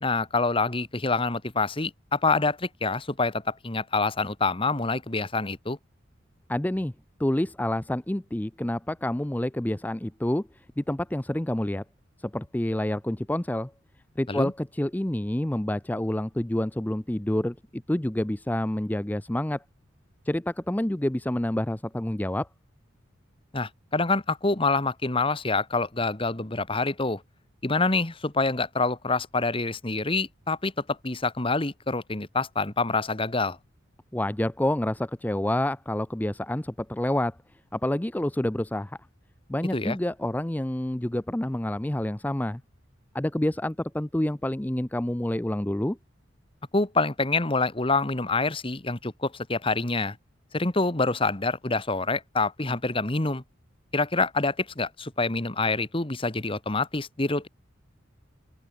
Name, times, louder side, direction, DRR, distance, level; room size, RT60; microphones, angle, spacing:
voice 1, 0.0-5.8 14.3-14.5 23.5-27.2 27.6-30.7 31.0-33.6 39.7-40.0 46.7-50.1 50.5-53.4 53.9-57.5, left 3 dB, 25° left, 1.5 m, -26 dB
voice 2, 6.5-6.9 7.2-11.8 12.2-13.7 14.2-19.6 20.3-22.5 34.1-37.4 37.7-39.0 39.5-42.6 43.1-46.0, left 1 dB, 10° left, 0.5 m, -28 dB
open air
head